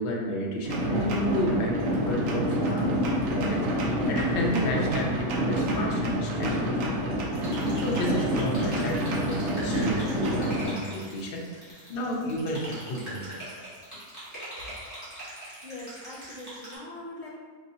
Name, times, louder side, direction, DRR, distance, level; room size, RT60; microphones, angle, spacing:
voice 1, 0.0-2.9 3.2-7.2 7.5-13.4, equal, 55° left, -1 dB, 0.6 m, -32 dB
sound 1, 0.6-10.7, equal, 75° right, 1.0 m, -27 dB
sound 2, 7.3-16.7, right 1 dB, 15° right, 1.4 m, -42 dB
voice 2, 15.6-17.3, left 1 dB, 55° right, -6 dB, 0.4 m, -42 dB
4.0 x 3.0 x 2.6 m, 1.6 s
omnidirectional pair, 1.5 m